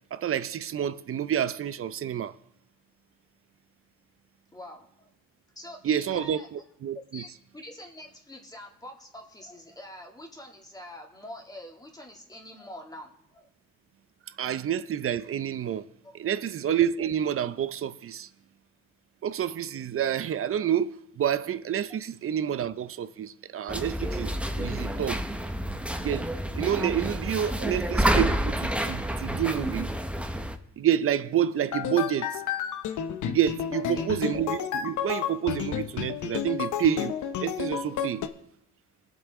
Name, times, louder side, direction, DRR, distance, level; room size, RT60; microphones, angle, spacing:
voice 1, 0.1-2.4 5.8-7.2 14.4-15.9 16.1-18.3 19.2-25.2 26.0-26.3 26.5-29.9 30.8-32.4 33.3-37.1 37.4-38.2, right 9 dB, 45° right, 0.6 m, -28 dB
voice 2, 4.5-5.1 5.6-6.5 7.1-13.5 14.4-14.5 16.0-16.2 21.9-22.0 33.7-34.1, left 1 dB, 15° left, 2.5 m, -45 dB
sound 1, 23.7-30.6, right 1 dB, 5° right, 0.9 m, -29 dB
sound 2, 31.7-38.3, left 9 dB, 75° left, 0.9 m, -31 dB
21.0 x 7.8 x 3.6 m
cardioid pair, 90°, 30 cm